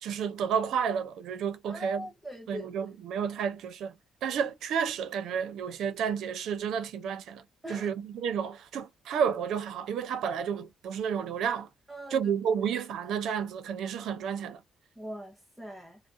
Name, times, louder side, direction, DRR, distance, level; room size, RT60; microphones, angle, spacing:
voice 1, 0.0-2.1 2.5-3.9 4.2-7.4 7.7-11.7 12.1-14.6, right 7 dB, 80° right, 0.6 m, -31 dB
voice 2, 1.7-2.7 7.6-7.9 11.9-12.3 15.0-16.0, equal, 10° right, 0.7 m, -41 dB
2.3 x 2.1 x 2.6 m
cardioid pair, 90°, 0 cm